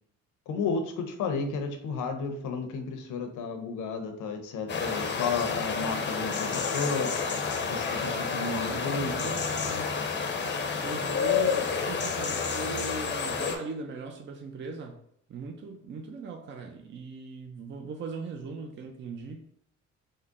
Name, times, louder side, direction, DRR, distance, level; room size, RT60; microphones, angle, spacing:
voice 1, 0.5-7.1 7.7-9.3, left 4 dB, 80° left, 5 dB, 0.7 m, -32 dB
sound 1, 4.7-13.6, left 5 dB, 35° left, 0.6 m, -30 dB
voice 2, 8.6-10.1 10.8-15.0 15.3-19.5, right 4 dB, 40° right, 4 dB, 0.5 m, -40 dB
3.7 x 2.1 x 3.6 m, 0.68 s
cardioid pair, 90°, 30 cm